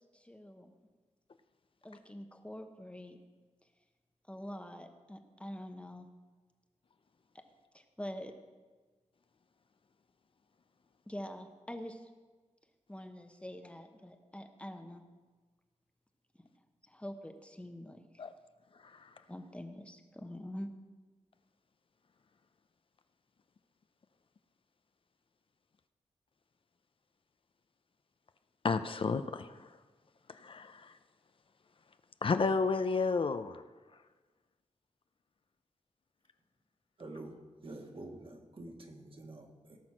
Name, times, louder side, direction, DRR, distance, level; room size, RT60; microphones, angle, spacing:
voice 1, 0.1-0.7 1.8-3.2 4.3-6.1 7.7-8.3 11.1-12.1 12.9-15.0 16.9-18.2 19.3-20.7, equal, 10° left, 6 dB, 0.9 m, -45 dB
voice 2, 28.6-29.7 30.3-30.9 32.2-33.6, left 4 dB, 45° left, 10 dB, 0.5 m, -32 dB
voice 3, 37.0-39.8, right 2 dB, 45° right, 2 dB, 1.7 m, -48 dB
17.5 x 6.1 x 6.1 m, 1.3 s
wide cardioid pair, 115°, 12 cm